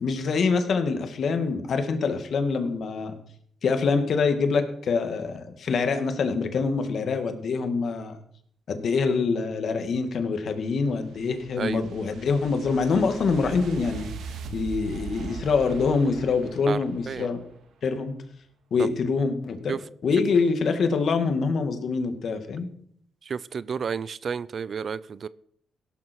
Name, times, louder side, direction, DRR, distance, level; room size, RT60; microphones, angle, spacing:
voice 1, 0.0-3.1 3.6-8.2 8.7-14.1 14.5-17.4 17.8-18.1 18.7-19.8 20.0-22.7, left 4 dB, 55° left, 2.2 m, -25 dB
sound 1, 10.4-17.7, right 7 dB, 80° right, 2.0 m, -40 dB
voice 2, 23.3-25.3, right 6 dB, 45° right, 0.5 m, -31 dB
17.5 x 12.0 x 4.7 m
cardioid pair, 110°, 0 cm